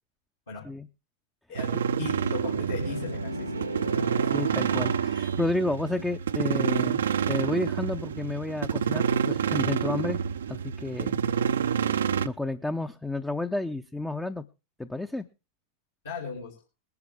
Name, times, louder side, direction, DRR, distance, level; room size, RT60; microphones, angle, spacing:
sound 1, 1.6-12.3, right 8 dB, 65° right, 0.6 m, -28 dB
voice 1, 2.0-3.5 3.9-4.0 16.0-16.5, left 5 dB, 70° left, -3 dB, 3.3 m, -36 dB
sound 2, 2.5-5.5, right 2 dB, 80° right, 1.1 m, -35 dB
voice 2, 4.3-7.0 7.3-10.2 10.5-11.2 12.2-14.4 14.8-15.2, left 2 dB, 5° left, 8 dB, 0.7 m, -31 dB
20.5 x 10.5 x 3.5 m, 0.30 s
figure-of-eight pair, 90°, 0 cm